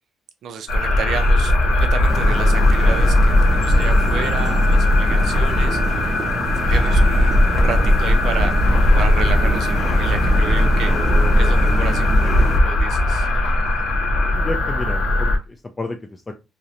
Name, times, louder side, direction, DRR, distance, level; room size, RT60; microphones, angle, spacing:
voice 1, 0.4-5.8 6.6-8.6 8.9-10.9 11.4-13.3, right 6 dB, 70° right, 8 dB, 0.3 m, -31 dB
sound 1, 0.7-15.4, left 1 dB, 80° left, 0.6 m, -17 dB
sound 2, 2.1-12.6, right 2 dB, 35° right, 0.7 m, -27 dB
voice 2, 14.3-16.4, left 2 dB, 25° left, 4 dB, 0.3 m, -31 dB
2.4 x 2.0 x 2.7 m, 0.26 s
cardioid pair, 90°, 0 cm